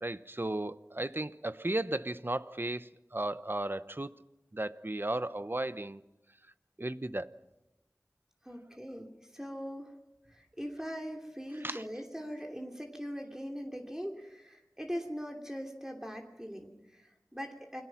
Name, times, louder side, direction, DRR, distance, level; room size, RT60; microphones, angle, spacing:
voice 1, 0.0-4.1 4.5-6.0 6.8-7.3 11.6-11.8, right 1 dB, 35° right, 0.9 m, -35 dB
voice 2, 8.4-10.0 10.3-17.8, equal, 10° right, 3.0 m, -41 dB
29.0 x 21.5 x 5.9 m
wide cardioid pair, 40°, 6 cm